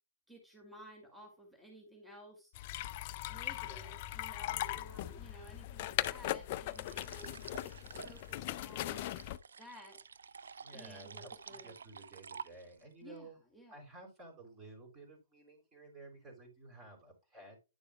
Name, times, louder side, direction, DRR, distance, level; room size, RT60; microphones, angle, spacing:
voice 1, 0.3-2.5 3.3-9.2 9.6-10.0 10.7-11.7 13.0-13.8, equal, 5° right, 1 dB, 2.1 m, -55 dB
sound 1, 2.5-9.4, left 15 dB, 40° left, 0.4 m, -39 dB
voice 2, 3.6-4.1 10.6-13.4 13.7-17.6, right 2 dB, 20° right, 3 dB, 4.3 m, -54 dB
sound 2, 6.7-12.9, right 6 dB, 70° right, 0.4 m, -51 dB
10.0 x 6.8 x 2.2 m, 0.28 s
figure-of-eight pair, 130°, 0 cm